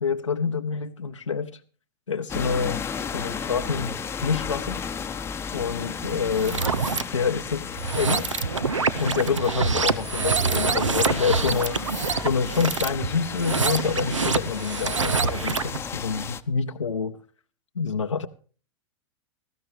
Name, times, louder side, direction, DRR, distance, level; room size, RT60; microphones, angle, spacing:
voice 1, 0.0-1.5 2.1-2.8 3.1-4.8 5.5-6.6 7.1-7.6 7.9-8.4 9.0-11.8 12.2-17.2 17.8-18.3, left 5 dB, 85° left, 0.8 m, -27 dB
sound 1, 2.3-16.4, left 6 dB, 15° left, 0.8 m, -34 dB
sound 2, 6.3-7.0 7.7-15.8, right 4 dB, 80° right, 0.9 m, -26 dB
18.5 x 15.5 x 3.1 m
figure-of-eight pair, 95°, 16 cm